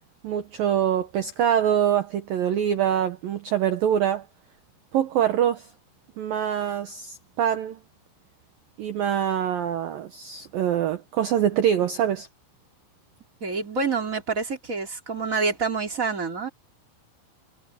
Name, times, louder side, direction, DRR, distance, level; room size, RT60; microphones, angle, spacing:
voice 1, 0.2-4.3 4.9-5.7 6.2-7.8 8.8-12.3, right 9 dB, 85° right, 2.0 m, -24 dB
voice 2, 13.4-16.5, right 4 dB, 20° right, 2.3 m, -27 dB
omnidirectional pair, 5.9 m